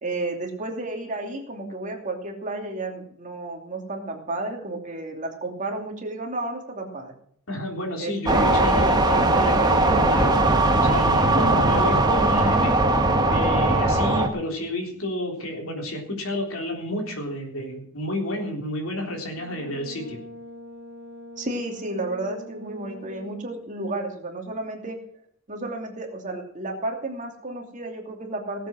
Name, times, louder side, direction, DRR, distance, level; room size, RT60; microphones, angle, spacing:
voice 1, 0.0-7.1 8.0-8.7 11.3-11.7 21.4-25.0 25.5-28.7, right 2 dB, 35° right, 2 dB, 2.8 m, -32 dB
voice 2, 7.5-10.5 10.8-12.8 13.3-20.2, left 1 dB, 70° left, 2 dB, 3.6 m, -30 dB
sound 1, 8.3-14.3, right 2 dB, 20° right, 1.4 m, -19 dB
Brass instrument, 19.2-23.6, left 1 dB, 55° right, 4.6 m, -43 dB
18.0 x 7.8 x 6.3 m, 0.62 s
head